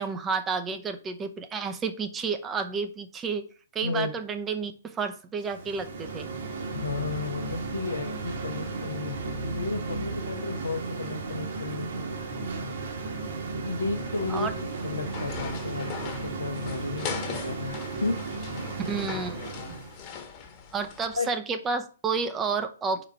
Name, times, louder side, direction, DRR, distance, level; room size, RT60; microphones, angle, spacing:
voice 1, 0.0-3.5 3.7-6.3 14.3-14.5 18.9-19.8 20.7-23.1, right 5 dB, 15° right, 0.7 m, -31 dB
sound 1, 5.5-20.0, right 3 dB, 55° right, 1.8 m, -35 dB
voice 2, 6.7-12.2 13.2-13.3 13.6-18.2 21.2-21.3, left 3 dB, 75° left, 0.9 m, -33 dB
sound 2, 13.9-21.2, left 6 dB, 30° left, 1.3 m, -40 dB
5.0 x 4.8 x 5.6 m
figure-of-eight pair, 120°, 0 cm